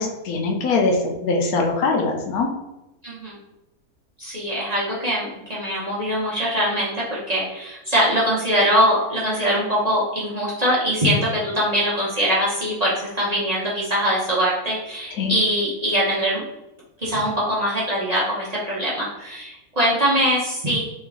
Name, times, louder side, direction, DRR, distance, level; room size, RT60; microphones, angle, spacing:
voice 1, 0.0-2.5 15.1-15.3, left 3 dB, 75° left, 1 dB, 1.1 m, -22 dB
voice 2, 3.0-3.4 4.2-6.9 7.3-16.4 17.0-20.8, equal, 35° right, -7 dB, 0.8 m, -22 dB
3.2 x 2.9 x 3.6 m, 0.94 s
omnidirectional pair, 1.6 m